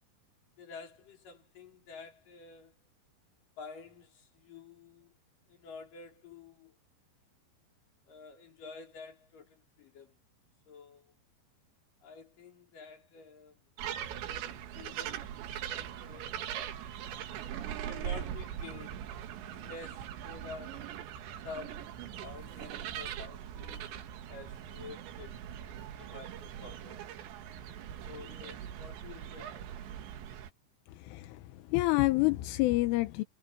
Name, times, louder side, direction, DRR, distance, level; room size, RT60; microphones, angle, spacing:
voice 1, 0.6-2.8 3.6-5.1 5.5-6.8 8.1-10.2 10.7-11.1 12.0-13.6 14.3-16.5 17.3-17.5 17.8-19.0 19.4-20.9 21.4-22.0 22.2-27.1 28.0-29.9, left 4 dB, 45° left, 5.6 m, -50 dB
sound 1, 13.8-30.5, right 10 dB, 70° right, 3.8 m, -41 dB
voice 2, 31.1-31.4 31.7-33.2, left 20 dB, 85° left, 3.4 m, -27 dB
omnidirectional pair, 5.7 m